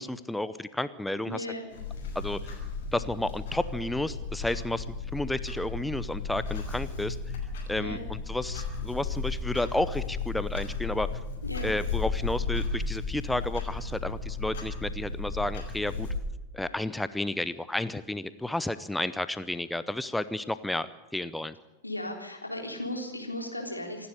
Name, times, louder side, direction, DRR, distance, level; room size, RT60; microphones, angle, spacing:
voice 1, 0.0-1.5 2.1-2.6 2.9-7.2 7.7-11.1 11.6-16.1 16.5-20.9 21.1-21.5, left 1 dB, 5° left, 14 dB, 0.7 m, -32 dB
voice 2, 1.3-1.6 7.8-8.1 11.4-11.7 21.8-24.1, left 1 dB, 85° left, 2 dB, 3.6 m, -36 dB
Clock, 1.7-16.2, left 4 dB, 55° left, 6.2 m, -34 dB
26.0 x 11.5 x 9.9 m, 1.1 s
figure-of-eight pair, 90°, 0 cm